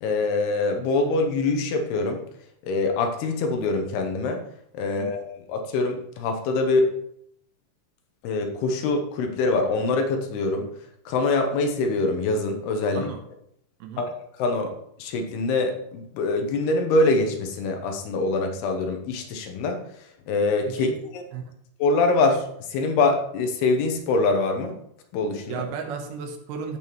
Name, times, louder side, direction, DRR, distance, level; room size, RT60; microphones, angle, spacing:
voice 1, 0.0-2.2 2.6-4.4 4.7-6.9 8.2-10.7 11.1-13.1 14.0-14.7 15.0-19.8 20.3-20.9 21.1-21.2 21.8-22.4 22.7-24.7 25.1-25.7, left 3 dB, 75° left, 4 dB, 2.8 m, -24 dB
voice 2, 25.5-26.8, right 6 dB, 75° right, 4 dB, 2.8 m, -34 dB
15.0 x 5.4 x 3.0 m, 0.73 s
omnidirectional pair, 4.8 m